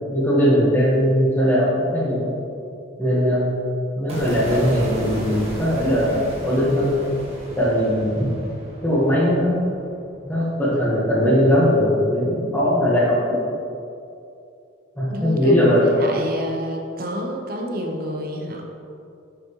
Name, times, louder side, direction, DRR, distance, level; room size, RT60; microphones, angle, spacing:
voice 1, 0.1-2.3 3.0-3.5 4.0-7.0 7.6-8.3 8.8-9.6 10.2-13.4 15.0-15.9, equal, 10° left, -6 dB, 1.3 m, -19 dB
sound 1, 4.1-10.3, equal, 30° right, 1.2 m, -34 dB
voice 2, 15.1-18.6, equal, 45° right, 1 dB, 0.7 m, -29 dB
7.0 x 6.2 x 3.0 m, 2.5 s
head